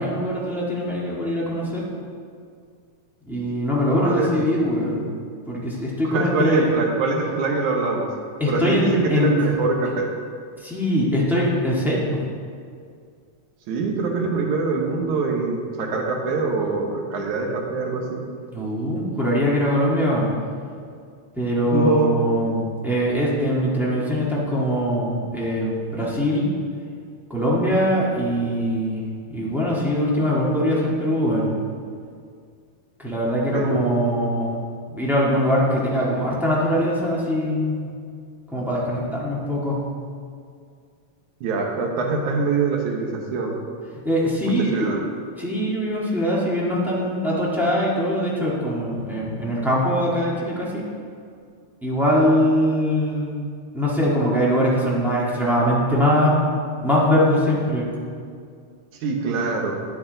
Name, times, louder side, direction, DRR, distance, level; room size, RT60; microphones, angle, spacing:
voice 1, 0.0-1.8 3.2-5.0 5.5-6.7 8.4-9.3 10.6-12.2 18.5-20.3 21.3-26.5 27.3-29.0 29.3-31.5 33.0-34.6 34.9-37.8 38.5-39.8 44.0-44.9 45.4-50.8 51.8-53.3 53.7-56.4 56.8-57.9, equal, ahead, -7 dB, 0.7 m, -22 dB
voice 2, 6.1-8.1 8.4-10.1 13.7-18.2 21.7-22.2 33.5-34.0 41.4-43.6 44.4-45.0 59.0-59.8, right 4 dB, 85° right, 1 dB, 2.5 m, -24 dB
9.7 x 8.4 x 3.9 m, 2.2 s
omnidirectional pair, 3.3 m